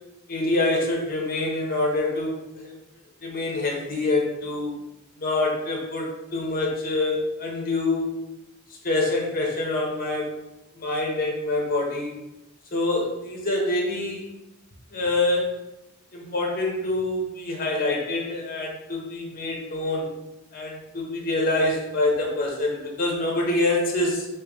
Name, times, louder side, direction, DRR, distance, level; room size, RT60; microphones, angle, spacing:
voice 1, 0.3-2.7 3.2-4.7 5.2-8.2 8.8-10.3 10.8-12.1 12.7-14.2 14.9-15.5 16.1-20.1 20.5-24.3, left 2 dB, 45° left, -1 dB, 0.9 m, -26 dB
3.3 x 3.0 x 3.5 m, 0.93 s
head